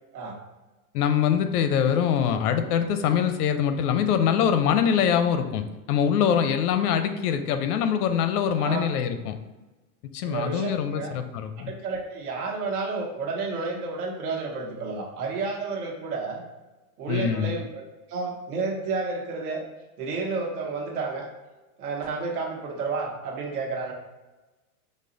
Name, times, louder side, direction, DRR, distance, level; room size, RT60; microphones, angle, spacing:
voice 1, 0.9-9.4 10.1-11.7 17.1-17.6, left 8 dB, 90° left, 8 dB, 0.6 m, -24 dB
voice 2, 10.2-11.1 11.6-16.4 17.0-19.6 20.0-21.3 21.8-23.9, right 4 dB, 80° right, 0 dB, 1.2 m, -31 dB
5.3 x 2.0 x 3.8 m, 1.1 s
supercardioid pair, 175°, 45 cm